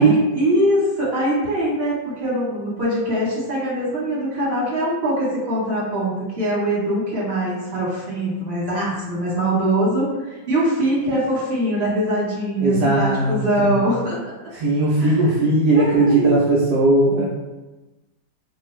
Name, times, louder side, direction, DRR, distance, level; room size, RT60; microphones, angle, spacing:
voice 1, 0.0-14.2 15.0-15.2 15.8-16.4, right 1 dB, 35° right, -8 dB, 1.3 m, -22 dB
voice 2, 12.6-13.8 14.5-17.3, right 2 dB, 70° right, -6 dB, 1.0 m, -18 dB
3.1 x 2.2 x 3.1 m, 1.1 s
omnidirectional pair, 2.1 m